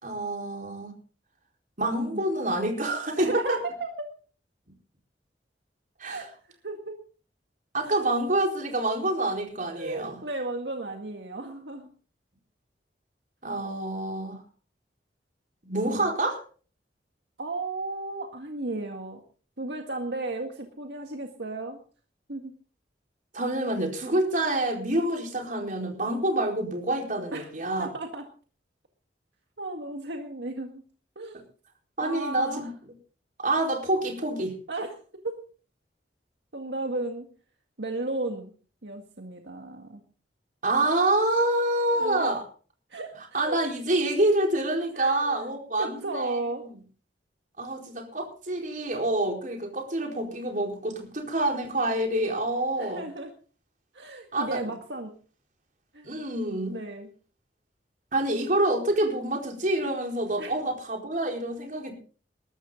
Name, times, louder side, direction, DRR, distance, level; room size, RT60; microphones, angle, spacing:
voice 1, 0.0-0.9 1.8-3.6 6.0-6.2 7.7-10.2 13.4-14.4 15.6-16.4 23.3-27.9 32.0-32.7 33.4-34.5 40.6-42.4 43.3-46.4 47.6-53.0 54.3-54.6 56.0-56.8 58.1-61.9, right 1 dB, 50° right, 2 dB, 4.4 m, -27 dB
voice 2, 3.2-4.1 6.1-7.0 7.8-8.0 9.7-11.9 15.7-16.1 17.4-19.2 19.6-21.8 22.3-22.5 27.3-27.5 27.8-28.2 29.6-30.8 31.2-31.4 32.0-32.7 34.7-35.4 36.5-37.3 37.8-38.5 38.8-40.0 41.9-42.3 42.9-43.6 44.9-45.4 45.8-46.6 52.8-53.3 53.9-55.1 55.9-56.1 56.7-57.1 60.4-60.6, right 2 dB, 75° right, 4 dB, 1.9 m, -34 dB
21.0 x 13.0 x 3.9 m, 0.40 s
head